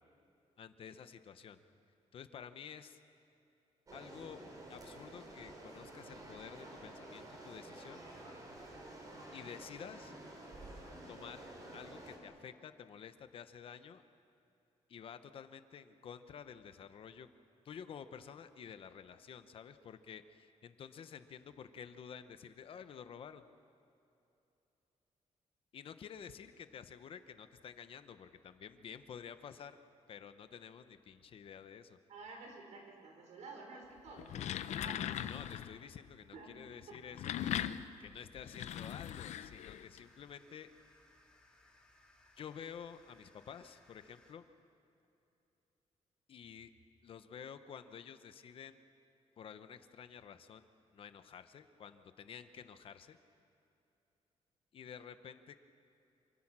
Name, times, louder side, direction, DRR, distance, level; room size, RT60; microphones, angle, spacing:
voice 1, 0.6-1.6 2.1-3.0 3.9-4.4 4.7-8.0 9.3-10.1 11.1-11.5 11.7-14.0 14.9-17.3 17.6-23.4 25.7-29.8 30.1-32.0 35.3-37.6 38.0-40.7 42.4-44.5 46.3-46.7 47.0-48.8 49.4-50.7 50.9-53.2 54.7-55.6, left 7 dB, 50° left, 10 dB, 0.9 m, -51 dB
sound 1, 3.9-12.2, right 1 dB, 30° right, 3.8 m, -51 dB
voice 2, 32.1-35.3 36.3-36.5, right 3 dB, 80° right, 1 dB, 5.7 m, -51 dB
sound 2, 34.1-35.8 36.9-40.0, left 10 dB, 75° left, 0.7 m, -40 dB
sound 3, 38.5-44.3, left 1 dB, 10° left, 2.5 m, -66 dB
27.0 x 25.0 x 6.2 m, 2.8 s
wide cardioid pair, 180°, 12 cm